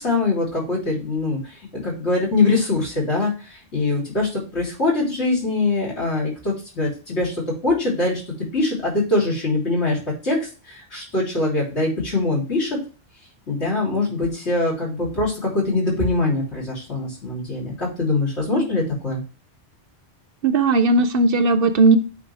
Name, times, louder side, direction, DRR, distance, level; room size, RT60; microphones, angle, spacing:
voice 1, 0.0-8.2 8.5-12.8 13.5-19.2, left 2 dB, 75° left, -4 dB, 3.6 m, -23 dB
voice 2, 20.4-22.0, right 3 dB, 60° right, 11 dB, 0.7 m, -17 dB
9.2 x 3.9 x 3.4 m, 0.33 s
omnidirectional pair, 1.2 m